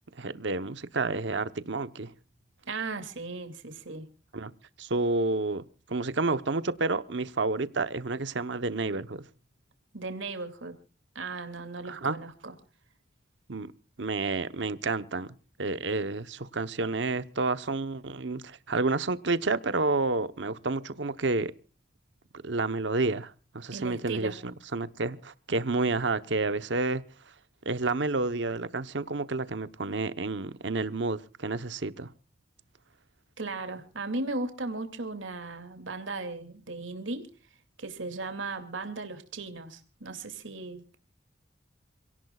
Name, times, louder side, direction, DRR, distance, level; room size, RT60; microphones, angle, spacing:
voice 1, 0.1-2.1 4.3-4.5 4.8-9.2 11.9-12.2 13.5-13.7 14.0-21.5 22.4-27.0 27.6-32.1, right 3 dB, 65° right, 1.0 m, -30 dB
voice 2, 2.7-4.1 9.9-10.7 11.1-12.5 23.7-24.3 33.4-37.2 37.8-41.0, right 3 dB, 80° right, 2.6 m, -36 dB
28.0 x 17.5 x 2.4 m
head